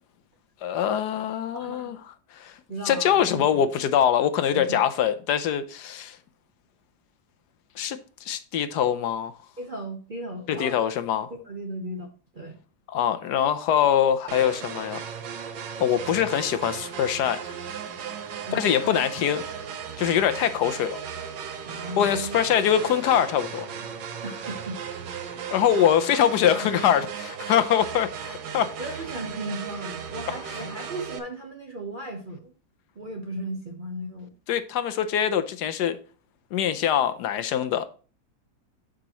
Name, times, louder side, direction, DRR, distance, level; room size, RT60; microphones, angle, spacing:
voice 1, 0.6-2.0 2.3-2.6 2.8-6.2 7.8-9.3 10.5-11.3 12.9-15.1 15.8-17.5 18.5-19.4 20.0-21.0 22.0-23.7 25.5-28.7 34.5-36.0 36.5-37.9, left 9 dB, 75° left, 1.1 m, -23 dB
voice 2, 1.5-2.0 2.7-3.4 4.5-4.8 9.6-10.8 11.4-12.6 18.5-19.0 21.7-22.4 24.2-24.8 26.5-27.0 28.8-32.5 33.0-34.3, right 1 dB, 45° right, 0.7 m, -36 dB
sound 1, 14.3-31.2, right 7 dB, 90° right, 1.6 m, -36 dB
11.5 x 5.0 x 2.9 m
omnidirectional pair, 1.9 m